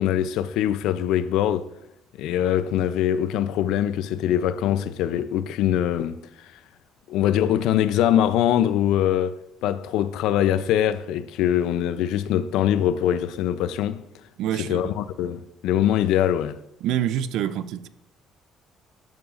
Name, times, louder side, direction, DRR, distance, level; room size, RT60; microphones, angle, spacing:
voice 1, 0.0-1.7 2.2-6.2 7.1-14.0 14.7-16.6, left 11 dB, 90° left, 0.4 m, -23 dB
voice 2, 14.4-14.9 16.8-17.9, right 10 dB, 80° right, 0.4 m, -26 dB
13.0 x 8.8 x 2.5 m
cardioid pair, 150°, 0 cm